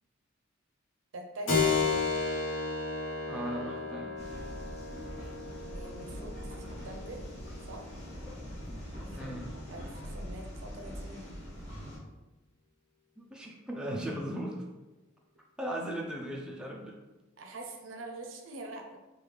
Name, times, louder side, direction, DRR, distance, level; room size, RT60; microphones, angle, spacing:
voice 1, 1.1-2.3 5.7-7.2 7.7-7.8 9.1-11.3 17.4-19.0, right 2 dB, 70° right, 3 dB, 0.5 m, -45 dB
Keyboard (musical), 1.5-9.7, left 4 dB, 70° left, 0.9 m, -34 dB
voice 2, 3.3-4.2 9.1-9.5 13.2-14.7 15.6-17.0, right 1 dB, 5° right, -2 dB, 0.3 m, -37 dB
sound 1, 4.2-12.0, equal, 35° left, 1.2 m, -43 dB
3.2 x 2.3 x 3.3 m, 1.1 s
head